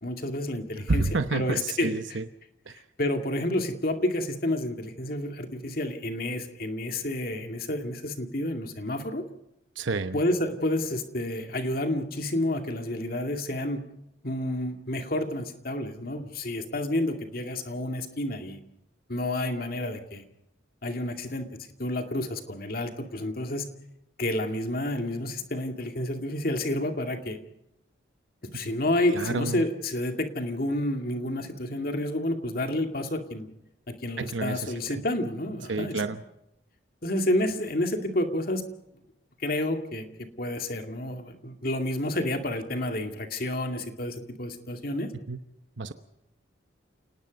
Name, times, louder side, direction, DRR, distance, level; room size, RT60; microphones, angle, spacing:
voice 1, 0.0-2.0 3.0-9.2 10.1-13.8 14.2-18.6 19.1-20.2 20.8-21.5 21.8-23.7 24.2-27.4 28.5-33.5 33.9-36.0 37.0-38.6 39.4-40.1 40.4-45.1, left 1 dB, 50° left, 5 dB, 2.3 m, -30 dB
voice 2, 0.9-2.2 2.7-2.8 9.8-10.2 29.1-29.6 34.2-35.0 35.7-36.2 45.3-45.4 45.8-45.9, right 3 dB, 80° right, 9 dB, 1.0 m, -29 dB
29.0 x 19.0 x 5.3 m, 0.86 s
head